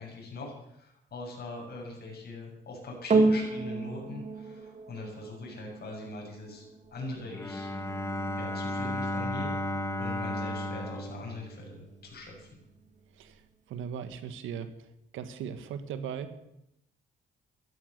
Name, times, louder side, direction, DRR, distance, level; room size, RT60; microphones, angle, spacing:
voice 1, 0.0-6.6 6.9-7.7 8.4-12.6, left 3 dB, 55° left, -1 dB, 7.1 m, -42 dB
sound 1, 3.1-11.7 12.4-12.5, right 3 dB, 35° right, 2.5 m, -33 dB
Bowed string instrument, 7.2-12.1, left 1 dB, 15° left, 1.5 m, -34 dB
voice 2, 13.7-14.9 15.1-16.4, right 7 dB, 85° right, 11 dB, 1.6 m, -38 dB
14.5 x 13.0 x 6.8 m, 0.81 s
cardioid pair, 90°, 20 cm